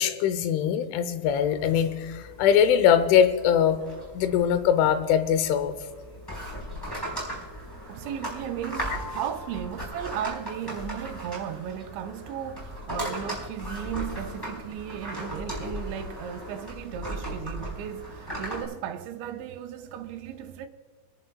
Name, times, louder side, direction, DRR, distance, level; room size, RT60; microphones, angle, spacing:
voice 1, 0.0-3.8 4.1-5.8, left 8 dB, 85° left, 3.3 m, -22 dB
sound 1, 1.2-18.6, equal, 5° left, 3.9 m, -38 dB
voice 2, 7.9-20.7, right 9 dB, 80° right, 2.8 m, -35 dB
27.5 x 11.0 x 2.3 m
omnidirectional pair, 5.4 m